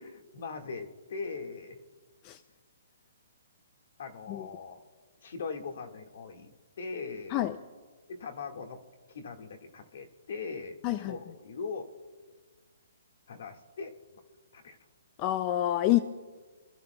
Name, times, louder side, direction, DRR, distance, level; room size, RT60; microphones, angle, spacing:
voice 1, 0.0-1.8 4.0-4.8 5.2-7.5 8.1-8.8 9.1-11.9 13.3-13.9 14.5-14.8 15.9-16.0, left 4 dB, 55° left, 5 dB, 1.8 m, -40 dB
voice 2, 15.2-16.0, left 14 dB, 20° left, 12 dB, 0.4 m, -27 dB
28.0 x 14.0 x 2.3 m, 1.4 s
hypercardioid pair, 170°, 0 cm